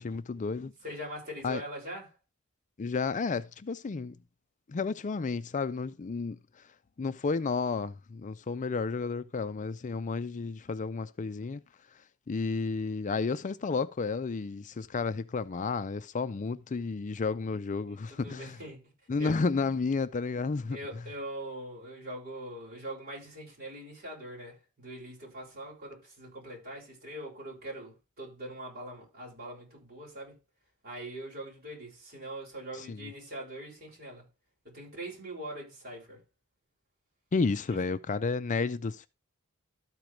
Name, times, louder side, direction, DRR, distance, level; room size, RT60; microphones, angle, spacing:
voice 1, 0.0-0.7 1.4-1.6 2.8-4.2 4.7-6.4 7.0-11.6 12.3-18.6 19.1-20.8 32.7-33.1 37.3-39.1, left 4 dB, 35° left, 0.4 m, -32 dB
voice 2, 0.8-2.2 17.9-18.9 19.2-19.3 20.7-30.4 30.8-34.2 34.6-36.2 37.7-37.8, right 1 dB, 45° right, 6.4 m, -42 dB
13.0 x 4.6 x 5.0 m
head